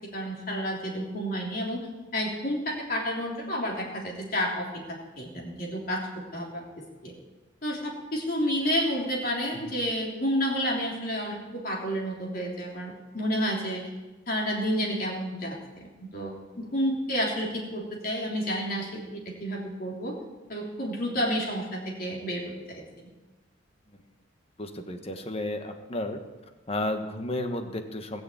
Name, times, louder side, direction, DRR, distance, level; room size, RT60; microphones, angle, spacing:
voice 1, 0.1-1.9 2.1-6.0 6.3-6.6 7.0-7.1 7.6-13.9 14.3-20.1 20.5-22.8, equal, 45° left, -1 dB, 3.4 m, -30 dB
voice 2, 24.6-26.2 26.7-28.2, left 1 dB, 30° left, 6 dB, 1.3 m, -32 dB
19.5 x 6.7 x 8.6 m, 1.2 s
head